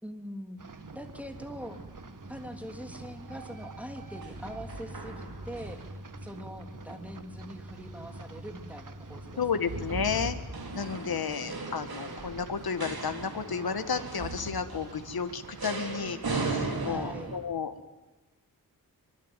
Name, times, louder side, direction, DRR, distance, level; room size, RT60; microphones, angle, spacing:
voice 1, 0.0-0.6 0.9-1.8 2.3-5.8 6.2-9.4 10.9-11.8 16.8-17.3, equal, 5° right, 6 dB, 3.3 m, -43 dB
sound 1, 0.6-16.2, right 4 dB, 55° right, 1.9 m, -48 dB
sound 2, 0.8-17.4, right 3 dB, 75° right, 4.9 m, -39 dB
voice 2, 9.4-10.4 10.7-17.7, left 6 dB, 75° left, 9 dB, 1.6 m, -32 dB
25.0 x 22.5 x 9.1 m, 1.1 s
wide cardioid pair, 75°, 37 cm